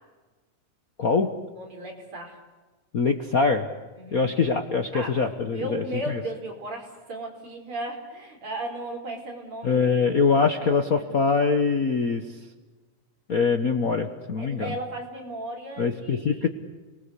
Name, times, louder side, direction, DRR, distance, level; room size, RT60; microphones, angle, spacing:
voice 1, 1.0-1.3 2.9-3.7 4.1-5.6 9.6-12.2 13.3-14.7 15.8-16.5, left 4 dB, 80° left, 6 dB, 0.8 m, -23 dB
voice 2, 1.6-2.4 4.0-4.4 4.9-11.1 14.4-16.5, right 1 dB, 40° right, 1 dB, 5.8 m, -36 dB
29.5 x 20.5 x 8.3 m, 1.3 s
omnidirectional pair, 3.6 m